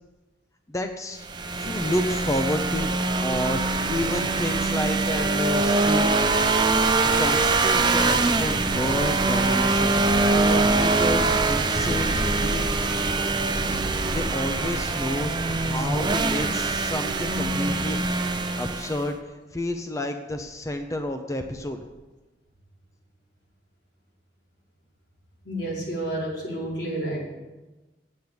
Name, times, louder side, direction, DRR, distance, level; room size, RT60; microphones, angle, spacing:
voice 1, 0.7-1.3 1.5-2.9 3.2-6.1 7.2-12.8 14.1-18.0 18.6-21.8, left 1 dB, 20° left, 6 dB, 0.6 m, -30 dB
sound 1, 1.2-19.1, right 3 dB, 25° right, 0.7 m, -23 dB
voice 2, 25.4-27.2, right 1 dB, 90° left, -5 dB, 4.8 m, -30 dB
8.7 x 8.3 x 7.9 m, 1.1 s
head